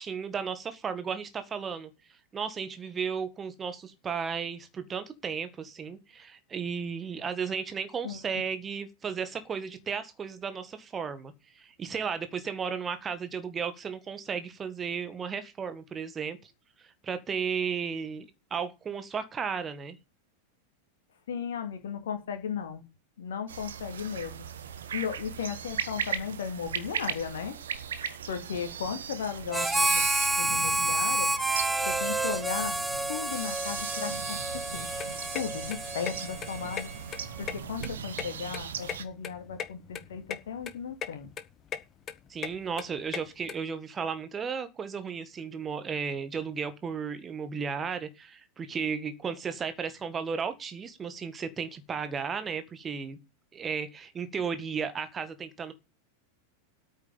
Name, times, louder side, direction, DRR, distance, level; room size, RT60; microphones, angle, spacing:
voice 1, 0.0-1.9 2.3-16.5 16.8-20.0 42.3-53.2 53.5-55.7, right 6 dB, 20° right, 1.8 m, -34 dB
voice 2, 21.3-22.8 23.2-27.6 28.3-30.0 30.4-31.3 31.9-32.8 33.1-34.9 35.3-36.9 37.4-41.3, left 7 dB, 60° left, 2.5 m, -36 dB
sound 1, 23.5-39.0, right 7 dB, 65° right, 1.5 m, -38 dB
Harmonica, 29.5-37.2, right 2 dB, 5° right, 1.0 m, -29 dB
sound 2, 34.7-43.5, left 8 dB, 30° left, 1.3 m, -39 dB
9.0 x 7.6 x 8.9 m
figure-of-eight pair, 90°, 0 cm